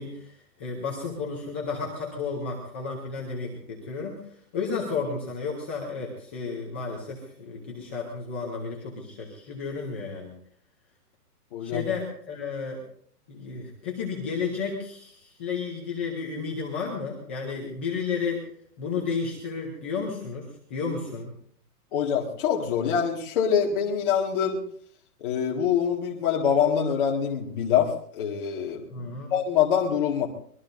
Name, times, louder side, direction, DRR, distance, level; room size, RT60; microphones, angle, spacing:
voice 1, 0.0-4.2 4.5-10.3 11.6-12.8 13.3-18.5 18.8-21.3 28.9-29.3, left 5 dB, 10° left, -2 dB, 0.6 m, -32 dB
voice 2, 11.5-11.8 21.9-24.6 25.2-28.8 29.3-30.3, left 8 dB, 35° left, -2 dB, 1.9 m, -25 dB
24.5 x 21.0 x 2.6 m, 0.63 s
hypercardioid pair, 170°, 46 cm